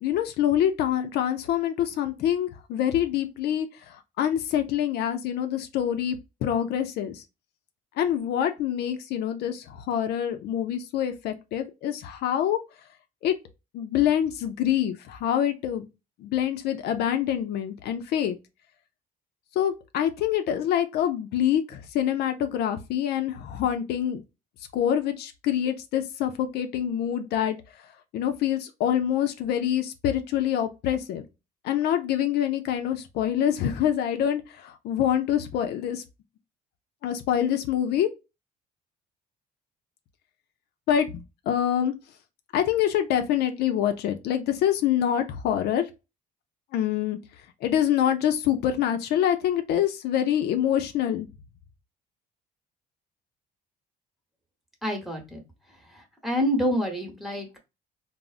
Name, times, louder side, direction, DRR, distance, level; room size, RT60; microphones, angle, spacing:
voice 1, 0.0-7.2 8.0-12.6 13.2-13.3 13.7-15.9 16.2-18.4 19.6-24.2 24.7-27.6 28.1-31.2 31.6-36.0 37.0-38.1 40.9-41.9 42.5-45.9 46.7-47.2 47.6-51.3, left 10 dB, 75° left, 0.5 m, -26 dB
voice 2, 54.8-55.4 56.2-57.6, equal, ahead, 1.0 m, -27 dB
3.6 x 2.0 x 2.4 m
cardioid pair, 110°, 17 cm